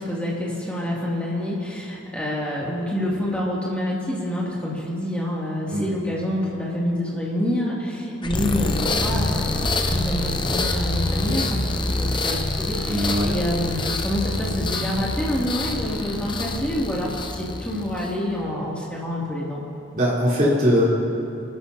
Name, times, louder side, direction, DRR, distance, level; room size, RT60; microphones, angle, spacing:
voice 1, 0.0-19.6, left 1 dB, 5° left, -6 dB, 2.6 m, -27 dB
sound 1, 8.2-18.2, left 2 dB, 25° left, 0.7 m, -26 dB
voice 2, 12.9-13.3 19.9-20.8, equal, 40° right, -7 dB, 3.7 m, -20 dB
25.5 x 13.0 x 2.9 m, 2.7 s
head